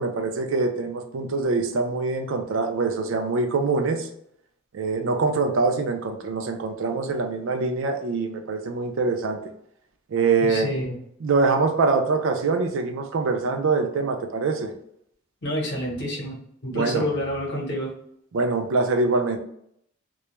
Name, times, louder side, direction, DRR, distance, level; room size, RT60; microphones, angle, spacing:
voice 1, 0.0-4.1 4.7-9.4 10.1-10.7 11.2-14.7 16.7-17.1 18.3-19.4, right 4 dB, 65° right, 6 dB, 0.4 m, -24 dB
voice 2, 10.4-11.0 15.4-17.9, equal, 55° left, -1 dB, 0.8 m, -28 dB
2.2 x 2.1 x 2.9 m, 0.71 s
head